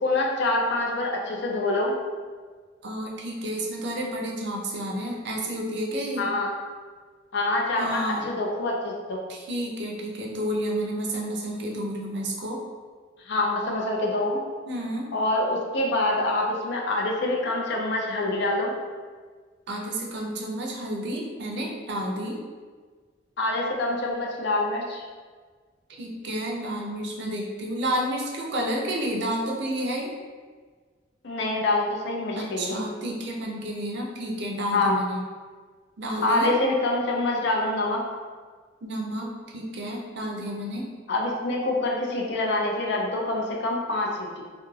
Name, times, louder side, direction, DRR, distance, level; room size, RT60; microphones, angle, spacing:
voice 1, 0.0-2.0 6.2-6.5 7.3-9.2 13.2-14.4 15.1-18.7 23.4-25.1 31.2-32.8 34.7-35.0 36.2-38.0 41.1-44.4, left 2 dB, 60° left, -1 dB, 0.4 m, -26 dB
voice 2, 2.8-6.3 7.8-8.3 9.3-12.6 14.7-15.1 19.7-22.4 25.9-30.1 32.4-35.2 36.0-36.5 38.8-40.9, right 1 dB, 60° right, -1 dB, 0.4 m, -30 dB
2.2 x 2.1 x 3.1 m, 1.5 s
head